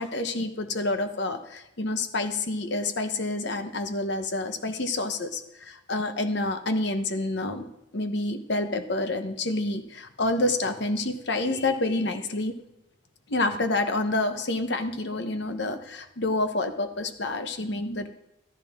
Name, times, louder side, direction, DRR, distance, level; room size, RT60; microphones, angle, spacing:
voice 1, 0.0-7.7 7.9-12.6 13.3-18.1, left 2 dB, 55° left, 8 dB, 1.0 m, -28 dB
15.0 x 13.0 x 3.6 m, 0.86 s
head